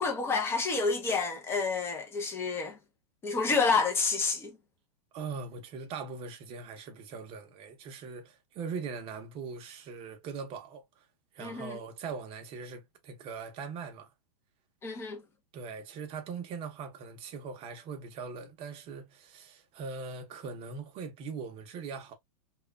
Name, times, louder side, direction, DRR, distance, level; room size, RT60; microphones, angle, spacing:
voice 1, 0.0-2.8 3.2-4.5 11.4-11.8 14.8-15.2, left 4 dB, 10° left, 0.6 m, -29 dB
voice 2, 5.1-11.1 11.3-14.1 15.5-22.1, right 5 dB, 25° right, 0.7 m, -41 dB
2.9 x 2.3 x 2.2 m
hypercardioid pair, 150°, 21 cm